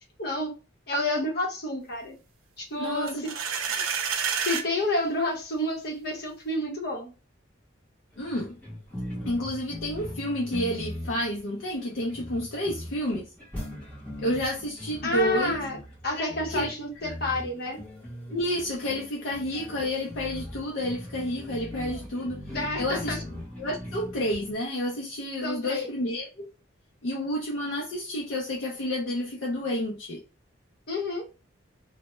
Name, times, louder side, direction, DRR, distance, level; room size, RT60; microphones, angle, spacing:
voice 1, 0.2-0.5 0.9-2.1 2.6-3.3 4.4-7.1 15.0-15.8 16.0-17.8 22.5-23.2 25.4-25.9 30.9-31.3, left 2 dB, 50° left, 0.8 m, -29 dB
voice 2, 2.8-3.2 8.2-8.5 9.3-13.3 14.2-15.6 16.2-16.7 18.3-22.5 22.8-23.2 23.6-26.5 27.0-30.2, equal, 65° left, 0.5 m, -30 dB
sound 1, 3.1-4.7, right 7 dB, 80° right, 0.4 m, -28 dB
sound 2, 8.1-24.5, left 1 dB, 5° left, 0.8 m, -40 dB
2.1 x 2.0 x 2.9 m
head